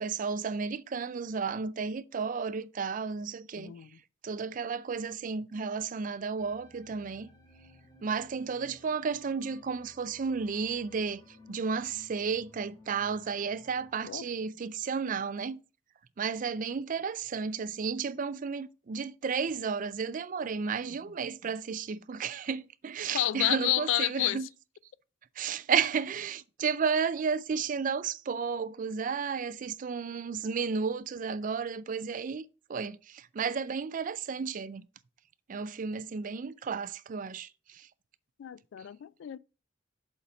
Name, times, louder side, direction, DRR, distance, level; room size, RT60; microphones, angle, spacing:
voice 1, 0.0-3.7 4.2-7.3 8.0-11.2 11.5-15.6 16.2-24.5 25.4-32.4 32.7-34.9 35.5-37.9, right 5 dB, 45° right, 0.4 m, -33 dB
voice 2, 3.6-4.0 14.0-14.2 23.1-24.4 38.4-39.4, left 14 dB, 75° left, 0.3 m, -30 dB
sound 1, 6.4-14.2, left 2 dB, 20° left, 1.2 m, -57 dB
7.0 x 4.1 x 5.0 m
head